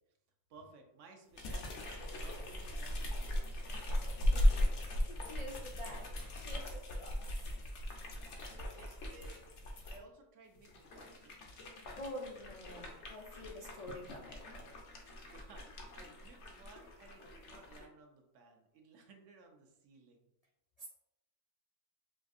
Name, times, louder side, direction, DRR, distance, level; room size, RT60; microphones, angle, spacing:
voice 1, 0.5-3.9 8.5-9.4 9.8-11.7 14.6-20.3, right 3 dB, 85° right, 3 dB, 1.0 m, -59 dB
sound 1, 1.3-10.0 10.6-17.8, left 1 dB, 75° left, 1.0 m, -37 dB
voice 2, 4.9-7.2 12.0-14.5 20.8-20.9, left 1 dB, 60° left, -3 dB, 0.4 m, -48 dB
5.0 x 2.6 x 2.4 m, 0.86 s
omnidirectional pair, 1.2 m